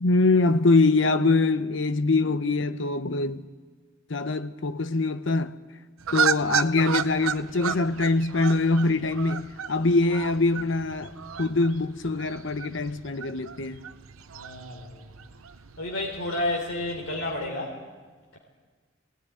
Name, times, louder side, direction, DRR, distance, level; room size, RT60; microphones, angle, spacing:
voice 1, 0.0-3.4 4.1-5.5 6.1-11.1 11.4-13.8, left 3 dB, 65° left, 0.8 m, -23 dB
sound 1, 6.0-17.5, right 7 dB, 90° right, 0.7 m, -33 dB
voice 2, 14.3-15.0 15.8-17.8, left 1 dB, 85° left, 3.6 m, -31 dB
21.0 x 18.5 x 9.8 m
head